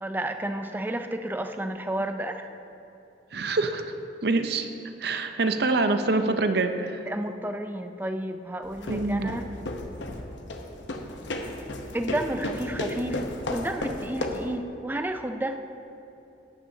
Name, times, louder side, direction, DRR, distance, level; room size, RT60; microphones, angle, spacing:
voice 1, 0.0-2.5 7.1-9.4 11.9-15.7, right 1 dB, 10° right, 7 dB, 0.4 m, -31 dB
voice 2, 3.3-3.9 4.2-4.7 5.0-7.0 8.9-9.4, right 3 dB, 60° right, 8 dB, 0.6 m, -25 dB
sound 1, 8.6-14.6, left 1 dB, 85° left, 0.9 m, -34 dB
14.0 x 9.9 x 2.7 m, 2.9 s
head